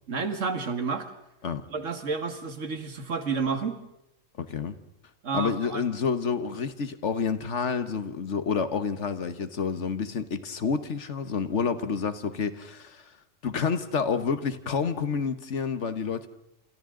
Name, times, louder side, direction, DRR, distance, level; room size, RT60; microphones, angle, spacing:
voice 1, 0.1-1.1 1.7-3.8 5.2-5.8, right 4 dB, 70° right, 8 dB, 2.0 m, -30 dB
voice 2, 4.4-4.8 5.3-13.1 13.4-16.3, left 5 dB, 65° left, 11 dB, 1.5 m, -29 dB
29.0 x 27.5 x 3.8 m, 0.83 s
omnidirectional pair, 1.3 m